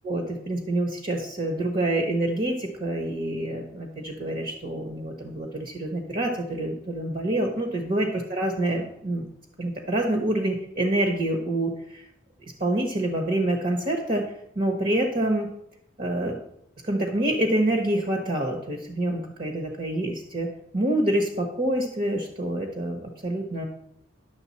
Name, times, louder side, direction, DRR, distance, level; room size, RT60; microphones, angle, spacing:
voice 1, 0.0-9.3 9.6-12.0 12.6-14.2 14.5-15.5 16.0-16.4 16.8-23.6, right 1 dB, 45° right, 2 dB, 1.2 m, -27 dB
10.5 x 6.7 x 4.3 m, 0.74 s
head